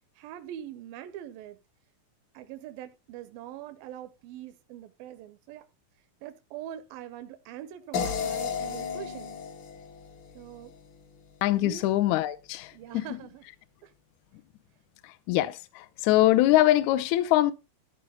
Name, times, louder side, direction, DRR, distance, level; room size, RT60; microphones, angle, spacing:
voice 1, 0.2-1.6 2.3-5.7 6.2-9.4 10.3-10.7 11.6-11.9 12.7-13.4 13.8-13.9, right 12 dB, 85° right, 2.5 m, -43 dB
sound 1, 7.9-11.0, left 6 dB, 55° left, 1.4 m, -34 dB
voice 2, 11.4-13.1 15.0-17.5, left 15 dB, 80° left, 1.8 m, -23 dB
13.5 x 4.6 x 5.5 m
omnidirectional pair, 4.0 m